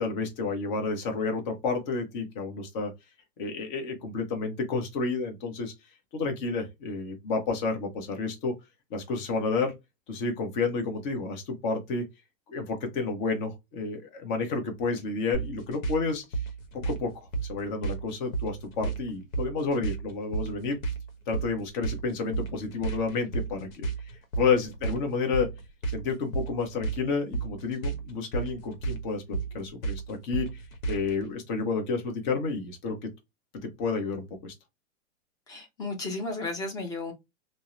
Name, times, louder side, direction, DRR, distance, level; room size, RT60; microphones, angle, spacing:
voice 1, 0.0-2.9 3.4-5.7 6.1-8.5 8.9-9.7 10.1-12.1 12.5-16.4 16.9-17.1 17.4-20.8 21.3-25.5 25.9-30.6 30.9-33.0 33.8-34.5, left 4 dB, 35° left, 0.8 m, -30 dB
sound 1, 15.3-31.2, right 4 dB, 80° left, 0.9 m, -33 dB
voice 2, 35.5-37.1, left 3 dB, 10° left, 0.5 m, -34 dB
2.7 x 2.0 x 2.3 m
hypercardioid pair, 140°, 40 cm